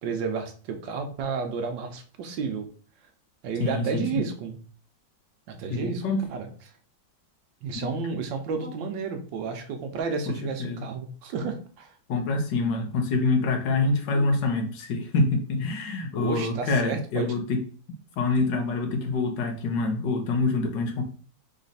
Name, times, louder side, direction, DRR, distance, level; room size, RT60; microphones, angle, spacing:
voice 1, 0.0-2.7 3.4-4.6 5.5-6.5 7.6-11.9 16.2-17.3, right 5 dB, 75° right, 5 dB, 1.4 m, -31 dB
voice 2, 3.6-4.2 5.7-6.2 7.7-7.9 8.6-8.7 10.3-10.9 12.1-17.6 18.2-21.0, left 3 dB, 70° left, 3 dB, 1.5 m, -26 dB
4.0 x 3.2 x 4.1 m, 0.41 s
omnidirectional pair, 2.1 m